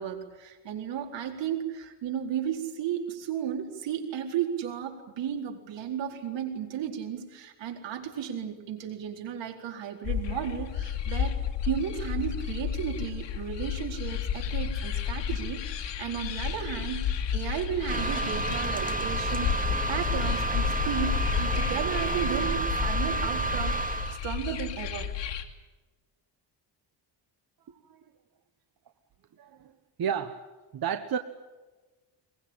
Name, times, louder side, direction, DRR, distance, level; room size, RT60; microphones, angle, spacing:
voice 1, 0.0-23.8 24.2-25.1, right 9 dB, 85° right, 3 dB, 4.3 m, -34 dB
sound 1, 10.0-25.4, left 8 dB, 80° left, 2.6 m, -32 dB
sound 2, 17.9-24.2, right 2 dB, 20° right, 2.3 m, -30 dB
voice 2, 27.7-28.0 29.4-29.7 30.0-31.2, right 8 dB, 55° right, 9 dB, 1.3 m, -32 dB
22.5 x 22.5 x 8.9 m, 1.2 s
cardioid pair, 125°, 43 cm